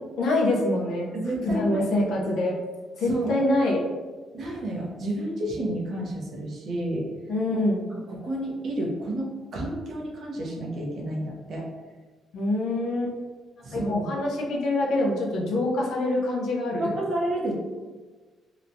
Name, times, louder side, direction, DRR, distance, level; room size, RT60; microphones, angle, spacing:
voice 1, 0.0-1.1 1.5-2.5 3.0-3.8 7.3-7.8 12.3-13.1 13.7-16.9, left 2 dB, 75° left, -2 dB, 0.6 m, -25 dB
voice 2, 1.1-2.2 3.1-3.4 4.3-7.1 7.9-11.7 13.6-14.1 16.8-17.5, right 1 dB, 60° right, -2 dB, 0.6 m, -31 dB
2.9 x 2.1 x 2.6 m, 1.4 s
cardioid pair, 90°, 0 cm